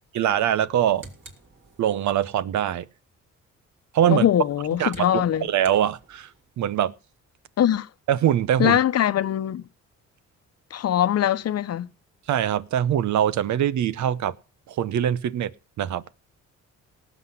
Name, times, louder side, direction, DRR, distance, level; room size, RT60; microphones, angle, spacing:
voice 1, 0.1-1.0 1.8-2.8 3.9-4.3 4.8-5.2 5.5-6.3 6.6-6.9 8.1-8.8 12.3-14.3 14.7-15.5 15.8-16.0, right 10 dB, 70° right, 0.9 m, -23 dB
sound 1, 0.6-2.2 4.2-6.5, right 2 dB, 40° right, 5.2 m, -50 dB
voice 2, 4.1-5.5 7.6-7.9 8.6-9.6 10.7-11.9, left 11 dB, 55° left, 0.9 m, -22 dB
18.0 x 8.1 x 5.6 m
cardioid pair, 90°, 30 cm